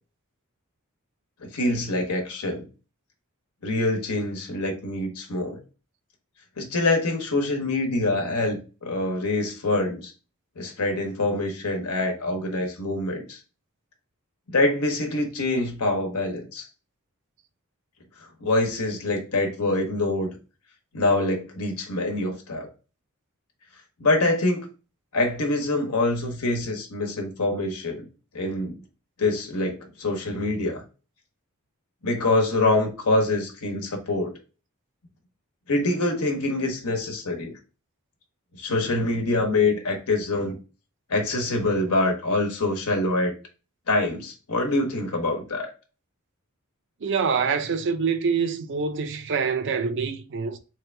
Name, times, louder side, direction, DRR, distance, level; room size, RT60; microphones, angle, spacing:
voice 1, 1.4-2.7 3.6-5.6 6.6-10.1 10.6-13.4 14.5-16.6 18.4-20.3 20.9-22.7 24.0-24.7 25.1-28.1 28.3-28.8 29.2-30.8 32.0-34.3 35.7-37.5 38.5-40.6 41.1-43.3 43.9-45.7, left 2 dB, 85° left, 1.0 m, -25 dB
voice 2, 47.0-50.6, right 5 dB, 55° right, 0.5 m, -25 dB
3.5 x 3.2 x 3.2 m
head